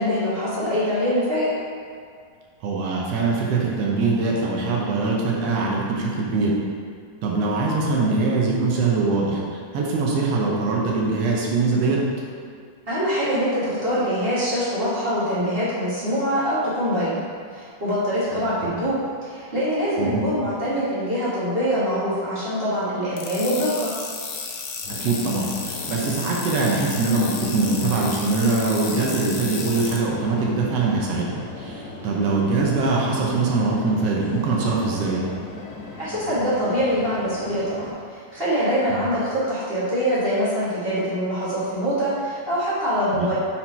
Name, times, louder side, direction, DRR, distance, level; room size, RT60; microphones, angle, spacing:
voice 1, 0.0-1.5 12.9-17.2 17.5-23.9 36.0-43.3, equal, 40° right, -11 dB, 0.8 m, -24 dB
voice 2, 2.6-6.5 7.2-9.4 9.7-12.0 18.3-18.7 20.0-20.2 25.0-35.2 38.9-39.1 43.1-43.3, right 3 dB, 70° right, -3 dB, 1.6 m, -23 dB
sound 1, 23.2-30.0, left 5 dB, 85° left, 2.3 m, -33 dB
sound 2, 24.8-37.9, left 2 dB, 65° left, 2.3 m, -37 dB
5.7 x 4.3 x 4.4 m, 2.1 s
omnidirectional pair, 3.7 m